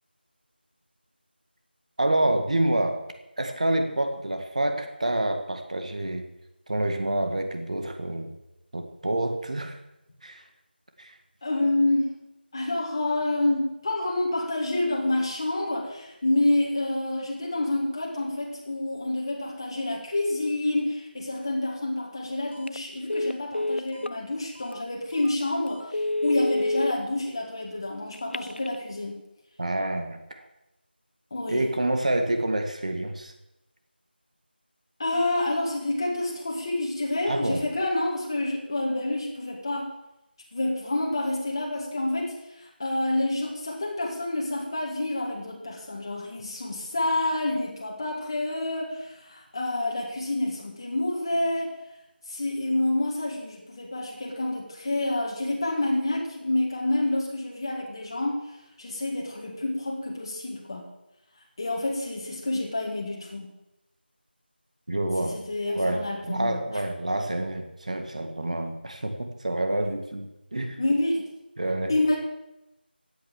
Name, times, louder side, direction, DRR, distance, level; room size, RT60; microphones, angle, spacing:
voice 1, 2.0-3.0 3.4-6.2 6.7-8.3 8.7-9.8 10.2-10.4 11.0-11.2 29.6-30.4 31.5-33.3 37.3-37.6 64.9-65.4 65.8-70.8 71.6-71.9, right 1 dB, 40° right, 6 dB, 1.9 m, -27 dB
voice 2, 11.4-12.2 12.5-29.2 31.3-31.7 35.0-39.9 40.5-51.7 52.3-58.5 58.8-60.9 61.6-63.5 65.2-66.6 70.8-71.3 71.9-72.2, left 2 dB, 25° left, -2 dB, 1.9 m, -28 dB
Telephone, 22.5-22.8 23.1-24.2 24.7-24.8 25.2-25.3 25.8-26.9 28.1-28.7, left 2 dB, 80° left, 0.5 m, -28 dB
16.0 x 8.6 x 7.4 m, 0.91 s
figure-of-eight pair, 175°, 6 cm